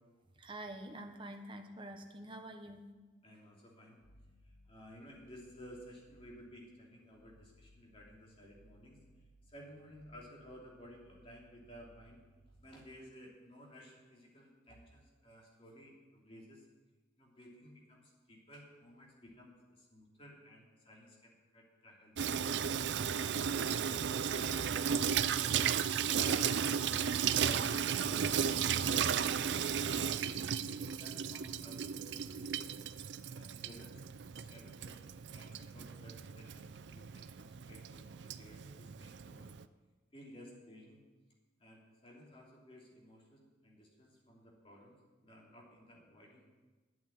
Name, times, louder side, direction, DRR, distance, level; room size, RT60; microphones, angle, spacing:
voice 1, 0.4-2.8, right 1 dB, 25° right, 5 dB, 1.1 m, -47 dB
voice 2, 3.2-4.0 4.4-9.0 9.4-12.2 12.6-16.7 17.2-22.5 23.1-24.0 24.3-25.8 26.0-26.9 27.4-30.4 31.0-32.8 33.3-39.5 40.1-41.0 41.6-46.5, equal, 30° left, -2 dB, 2.9 m, -56 dB
sound 1, 4.0-12.7, equal, 60° left, 2.5 m, -65 dB
Water tap faucet / Sink (filling or washing), 22.2-39.6, right 7 dB, 65° right, 0.4 m, -35 dB
10.5 x 8.4 x 8.8 m, 1.2 s
head